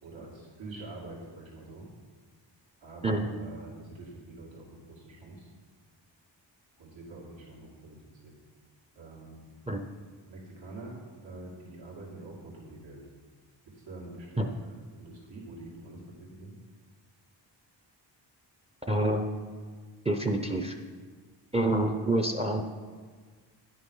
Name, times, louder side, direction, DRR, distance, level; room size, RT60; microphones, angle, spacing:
voice 1, 0.0-1.9 2.8-5.5 6.8-8.0 8.2-8.3 8.9-9.4 10.3-13.1 13.6-16.5, right 2 dB, 90° right, -5 dB, 2.5 m, -46 dB
voice 2, 18.9-19.3 20.1-20.8 21.5-22.6, right 1 dB, 15° right, 5 dB, 0.4 m, -27 dB
10.0 x 6.3 x 5.4 m, 1.5 s
wide cardioid pair, 155°, 44 cm